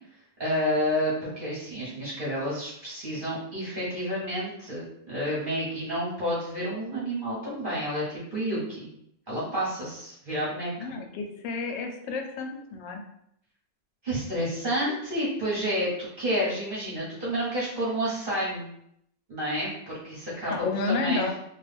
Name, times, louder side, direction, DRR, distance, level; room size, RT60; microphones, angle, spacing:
voice 1, 0.4-8.8 9.3-10.9 14.0-18.7 19.3-21.3, equal, 40° right, -7 dB, 0.7 m, -30 dB
voice 2, 10.8-13.0 20.5-21.3, left 3 dB, 90° left, 4 dB, 1.3 m, -30 dB
3.0 x 2.3 x 3.3 m, 0.73 s
omnidirectional pair, 1.9 m